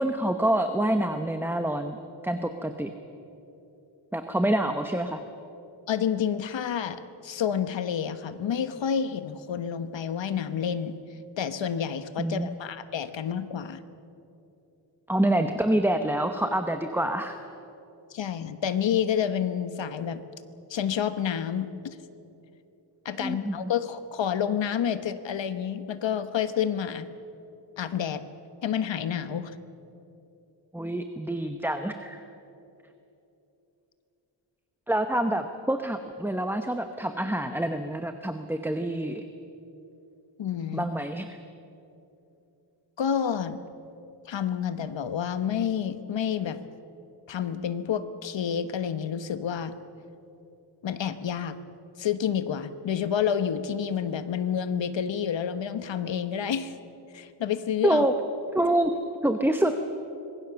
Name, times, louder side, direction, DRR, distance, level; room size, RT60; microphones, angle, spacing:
voice 1, 0.0-2.0 2.2-2.9 4.1-5.2 12.2-12.5 15.1-17.4 23.2-23.7 30.7-32.2 34.9-39.2 40.7-41.3 57.8-58.1 58.5-58.9 59.2-59.8, right 1 dB, 5° right, 7 dB, 0.9 m, -26 dB
voice 2, 5.9-11.0 11.4-13.8 18.1-20.2 20.7-22.0 23.0-27.1 27.8-28.2 28.6-29.5 40.4-40.9 43.0-43.6 44.2-46.6 47.3-49.7 50.8-51.6 52.0-56.7 57.1-58.1, left 8 dB, 70° left, 11 dB, 1.3 m, -29 dB
25.5 x 21.5 x 7.0 m, 2.9 s
wide cardioid pair, 140°, 46 cm